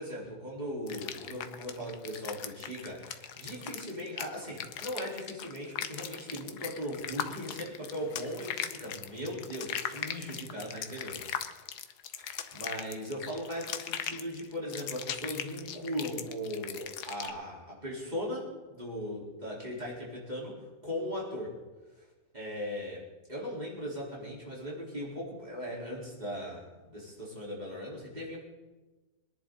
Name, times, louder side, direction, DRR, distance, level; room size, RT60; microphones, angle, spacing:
voice 1, 0.0-11.2 12.5-20.6 20.8-21.5 22.3-23.0 23.3-28.4, equal, 25° right, -5 dB, 4.2 m, -38 dB
sound 1, 0.9-17.3, left 9 dB, 85° left, 1.4 m, -39 dB
24.0 x 10.5 x 4.0 m, 1.2 s
omnidirectional pair, 1.7 m